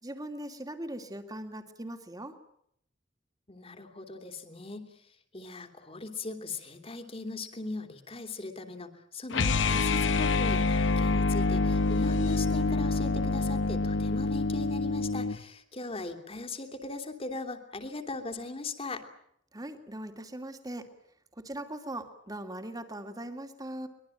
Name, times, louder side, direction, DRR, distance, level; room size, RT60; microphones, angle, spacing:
voice 1, 0.0-2.4 19.5-20.9 21.4-23.9, right 1 dB, 20° right, 7 dB, 2.7 m, -40 dB
voice 2, 3.5-4.9 5.3-19.0, left 3 dB, 30° left, 7 dB, 3.0 m, -39 dB
sound 1, 9.3-15.4, left 3 dB, 85° left, 1.0 m, -26 dB
23.5 x 22.0 x 9.1 m, 0.71 s
head